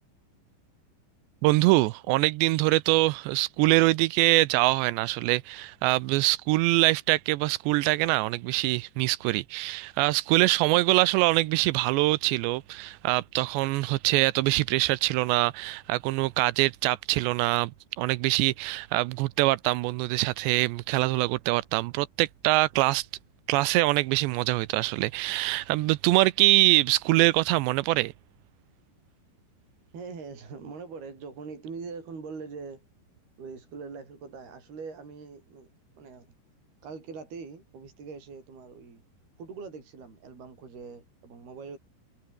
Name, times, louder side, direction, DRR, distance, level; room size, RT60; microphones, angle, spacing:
voice 1, 1.4-17.7 18.0-23.1 23.5-28.1, right 19 dB, 85° right, 2.8 m, -24 dB
voice 2, 29.9-32.8 33.4-35.7 36.0-36.3 36.8-39.0 39.4-41.8, right 5 dB, 55° right, 8.4 m, -42 dB
omnidirectional pair, 5.3 m